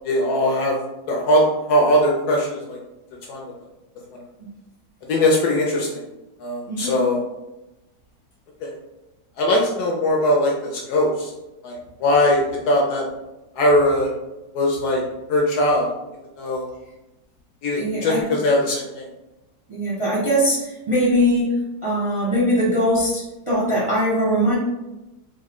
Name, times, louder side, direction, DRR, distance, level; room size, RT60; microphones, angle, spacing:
voice 1, 0.0-0.8 1.1-1.4 1.7-2.8 3.3-3.5 5.1-6.0 6.4-7.2 8.6-8.7 9.4-11.3 11.6-13.0 13.6-14.1 14.5-15.0 15.3-15.9 16.4-16.7 17.6-19.1, left 1 dB, 70° left, -1 dB, 1.0 m, -20 dB
voice 2, 6.7-7.0 17.8-18.2 19.7-24.5, equal, 30° right, -7 dB, 0.5 m, -21 dB
3.5 x 2.1 x 3.6 m, 0.99 s
omnidirectional pair, 2.0 m